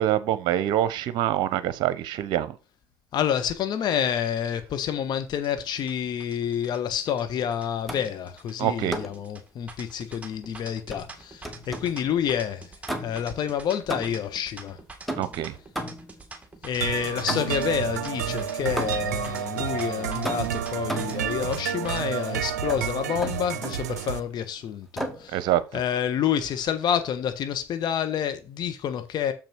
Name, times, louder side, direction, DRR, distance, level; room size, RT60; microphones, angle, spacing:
voice 1, 0.0-2.6 8.6-8.9 15.2-15.6 25.3-25.8, right 12 dB, 60° right, 0.8 m, -25 dB
voice 2, 3.1-12.7 13.0-14.8 16.6-25.4 25.7-29.3, left 9 dB, 55° left, 1.4 m, -28 dB
sound 1, 5.3-22.0, right 3 dB, 15° right, 2.0 m, -45 dB
sound 2, 7.9-8.2 8.9-9.3 10.9-12.0 12.9-13.4 13.9-14.4 15.1-16.2 17.3-17.7 18.8-19.2 20.2-21.3 22.7-22.9 23.2-23.9 25.0-25.3, right 1 dB, ahead, 1.8 m, -34 dB
sound 3, 16.8-24.2, right 9 dB, 85° right, 0.5 m, -30 dB
6.9 x 5.9 x 4.6 m
hypercardioid pair, 65°, 9 cm